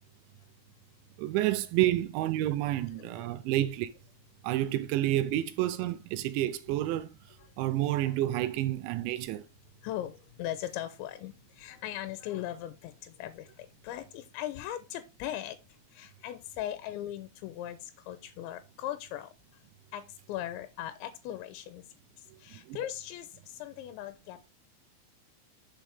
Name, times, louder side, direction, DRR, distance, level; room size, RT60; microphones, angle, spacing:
voice 1, 1.2-3.9 4.4-7.1 7.6-9.4 22.7-22.8, right 14 dB, 80° right, 2.8 m, -29 dB
voice 2, 3.0-3.3 7.4-7.5 9.8-19.6 19.9-24.5, left 12 dB, 80° left, 2.9 m, -39 dB
8.9 x 6.3 x 3.5 m
omnidirectional pair, 5.7 m